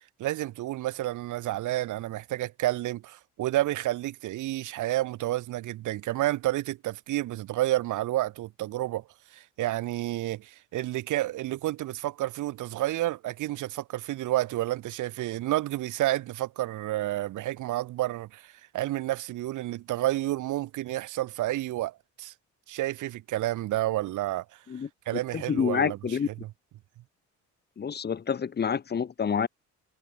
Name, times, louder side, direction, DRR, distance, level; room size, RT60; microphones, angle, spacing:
voice 1, 0.2-9.0 9.3-22.3 22.7-24.4 25.1-26.0 26.4-26.5, right 15 dB, 80° right, 1.3 m, -30 dB
voice 2, 25.3-26.3 27.8-29.5, left 7 dB, 35° left, 0.9 m, -28 dB
cardioid pair, 90°, 30 cm